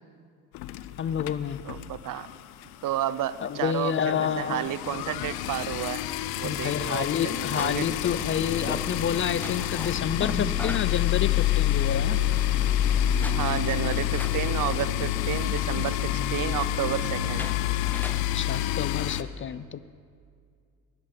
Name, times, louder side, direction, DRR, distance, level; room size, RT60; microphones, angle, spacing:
sound 1, 0.5-2.3 2.6-2.8 3.1-3.2 3.4-19.2, left 13 dB, 75° left, 0.6 m, -28 dB
voice 1, 1.0-1.6 3.4-4.7 6.4-12.2 18.3-19.8, left 8 dB, 35° left, 16 dB, 0.4 m, -29 dB
voice 2, 1.6-2.3 2.8-6.0 6.4-7.9 13.4-17.5, right 12 dB, 60° right, 16 dB, 0.6 m, -31 dB
sound 2, 6.5-19.2, left 1 dB, 5° left, 0.7 m, -42 dB
sound 3, 7.2-15.9, right 1 dB, 85° right, 1.8 m, -43 dB
12.0 x 11.0 x 5.2 m, 2.2 s
supercardioid pair, 65°, 37 cm